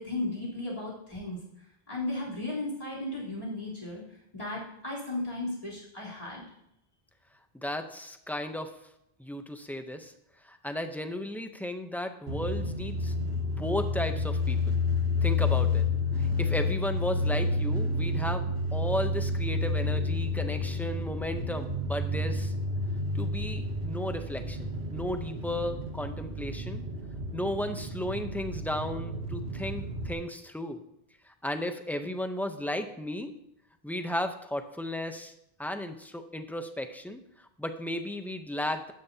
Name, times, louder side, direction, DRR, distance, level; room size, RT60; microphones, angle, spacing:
voice 1, 0.0-1.4 1.9-4.0 4.3-6.4, left 2 dB, 35° left, -6 dB, 3.8 m, -35 dB
voice 2, 7.6-8.7 9.2-10.1 10.4-13.1 13.4-14.8 15.2-15.8 16.2-18.5 18.7-22.5 23.1-26.8 27.3-30.8 31.3-33.3 33.8-35.3 35.6-38.9, left 1 dB, ahead, 7 dB, 0.6 m, -34 dB
sound 1, 12.3-30.1, left 2 dB, 80° right, 1.6 m, -30 dB
13.0 x 10.5 x 2.8 m, 0.79 s
omnidirectional pair, 1.1 m